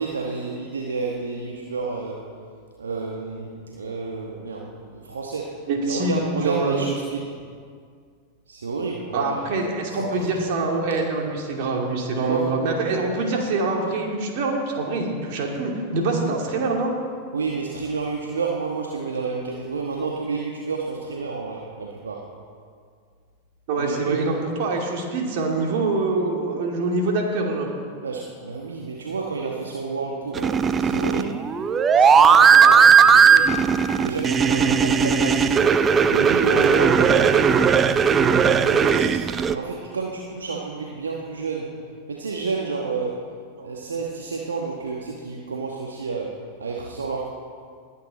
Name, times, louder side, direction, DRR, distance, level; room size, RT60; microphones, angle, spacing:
voice 1, 0.0-2.3 2.8-7.3 8.5-9.4 9.9-10.4 12.2-12.5 17.3-22.3 23.7-24.4 28.0-31.4 31.9-33.7 34.0-35.6 36.1-38.0 38.3-41.8 42.1-43.2 43.6-47.3, right 4 dB, 80° right, -1 dB, 1.2 m, -30 dB
voice 2, 5.7-6.8 9.1-16.9 23.7-27.7 37.3-37.4 43.6-43.7, right 3 dB, 55° right, 0 dB, 2.7 m, -25 dB
sound 1, 30.3-39.5, right 6 dB, 25° right, 0.5 m, -17 dB
20.0 x 9.0 x 4.2 m, 2.1 s
hypercardioid pair, 95°, 0 cm